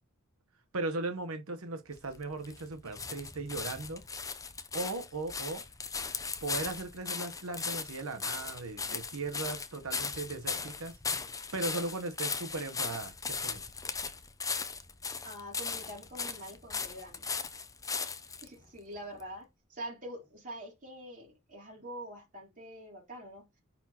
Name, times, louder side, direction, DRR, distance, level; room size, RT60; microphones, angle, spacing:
voice 1, 0.7-4.0 4.7-5.6 6.4-10.9 11.5-13.6, right 3 dB, 75° right, 1.1 m, -37 dB
sound 1, 1.9-18.5 19.2-19.3, left 5 dB, 15° left, 0.6 m, -38 dB
voice 2, 15.2-17.3 18.4-23.5, right 1 dB, 40° right, 3.8 m, -45 dB
9.8 x 4.3 x 2.9 m
head